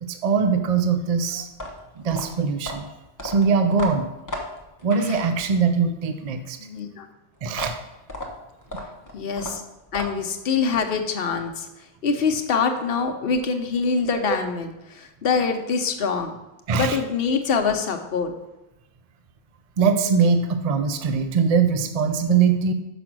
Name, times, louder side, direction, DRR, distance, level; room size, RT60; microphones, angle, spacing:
voice 1, 0.0-1.5 2.0-2.9 3.2-4.1 4.8-6.6 7.4-7.8 16.7-17.0 19.8-22.7, right 5 dB, 45° right, 8 dB, 0.5 m, -21 dB
sound 1, 1.5-5.8 7.5-10.4, left 1 dB, 20° left, 0.8 m, -35 dB
voice 2, 6.6-7.1 9.1-9.6 9.9-11.7 12.0-16.3 16.7-18.3, left 5 dB, 65° left, 5 dB, 1.0 m, -24 dB
6.0 x 5.1 x 6.0 m, 0.97 s
omnidirectional pair, 1.1 m